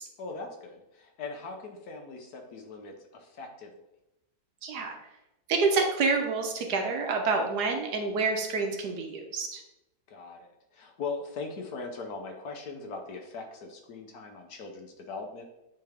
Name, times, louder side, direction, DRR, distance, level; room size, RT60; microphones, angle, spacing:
voice 1, 0.2-3.7 10.1-15.4, left 4 dB, 65° left, 3 dB, 1.2 m, -40 dB
voice 2, 4.6-5.0 5.5-9.6, right 4 dB, 65° right, 3 dB, 1.3 m, -28 dB
9.2 x 3.3 x 3.4 m, 0.90 s
omnidirectional pair, 2.0 m